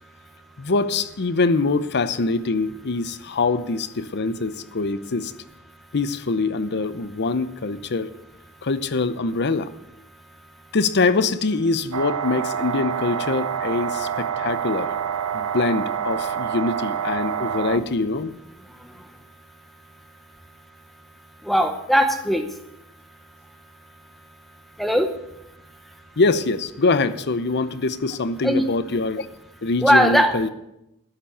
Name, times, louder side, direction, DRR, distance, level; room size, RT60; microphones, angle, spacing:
voice 1, 0.6-5.3 5.9-8.1 8.6-9.7 10.7-14.9 15.3-18.3 26.2-29.3 29.6-30.5, left 3 dB, 50° left, 14 dB, 0.7 m, -24 dB
sound 1, 11.9-17.8, right 8 dB, 75° right, 0.8 m, -27 dB
voice 2, 21.5-22.4 24.8-25.1 28.4-28.7 29.8-30.4, equal, ahead, 7 dB, 0.8 m, -19 dB
12.0 x 7.1 x 8.9 m, 0.87 s
head